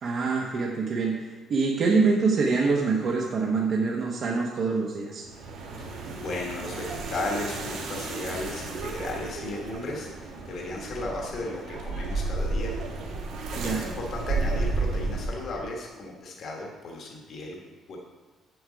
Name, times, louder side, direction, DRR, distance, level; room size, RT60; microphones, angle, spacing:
voice 1, 0.0-5.2 13.6-13.8, right 4 dB, 40° right, -2 dB, 0.9 m, -25 dB
sound 1, 5.2-15.6, right 3 dB, 70° right, 1.9 m, -32 dB
voice 2, 5.8-12.7 13.5-18.0, left 2 dB, 40° left, -1 dB, 1.4 m, -35 dB
7.9 x 7.9 x 5.1 m, 1.3 s
cardioid pair, 175°, 0 cm